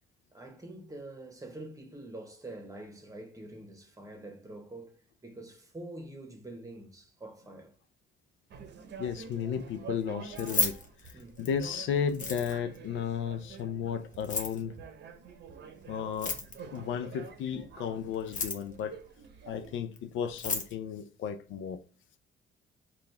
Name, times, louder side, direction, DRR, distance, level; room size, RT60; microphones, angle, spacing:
voice 1, 0.3-7.8 11.1-11.4, right 2 dB, 15° right, 1.0 m, -46 dB
sound 1, 8.5-19.8, right 6 dB, 60° right, 0.7 m, -48 dB
voice 2, 9.0-10.8 11.4-14.7 15.9-16.4 16.7-19.0 19.5-21.8, left 8 dB, 80° left, 0.5 m, -34 dB
Keys jangling, 10.3-11.6 12.1-12.8 14.1-14.6 16.1-16.8 18.1-18.8 20.0-20.1 20.3-20.7, left 4 dB, 40° left, 0.8 m, -33 dB
4.0 x 2.4 x 3.2 m
cardioid pair, 90°, 20 cm